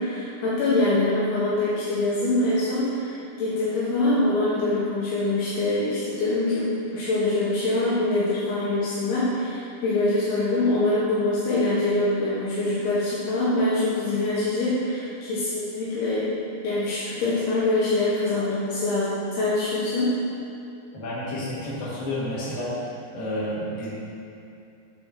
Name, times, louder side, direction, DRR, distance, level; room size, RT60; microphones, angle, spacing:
voice 1, 0.0-16.3 16.6-20.2, left 2 dB, 80° left, -9 dB, 3.1 m, -24 dB
voice 2, 20.9-22.8 23.1-23.9, left 1 dB, 65° left, -8 dB, 3.6 m, -30 dB
8.6 x 4.6 x 5.7 m, 2.6 s
omnidirectional pair, 4.7 m